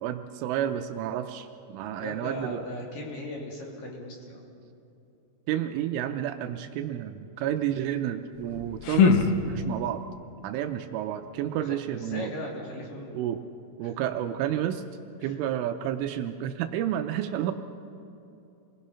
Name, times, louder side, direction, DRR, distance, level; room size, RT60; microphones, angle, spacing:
voice 1, 0.0-2.6 5.5-10.0 10.4-12.3 13.1-13.4 13.8-14.8 15.2-17.5, right 11 dB, 80° right, 7 dB, 3.1 m, -30 dB
voice 2, 2.0-4.4 11.5-13.3 13.8-13.9 15.2-15.4, left 1 dB, 45° left, -1 dB, 3.9 m, -38 dB
sound 1, 8.3-10.0, left 6 dB, 75° left, 2.2 m, -24 dB
27.5 x 20.0 x 5.7 m, 2.7 s
omnidirectional pair, 5.8 m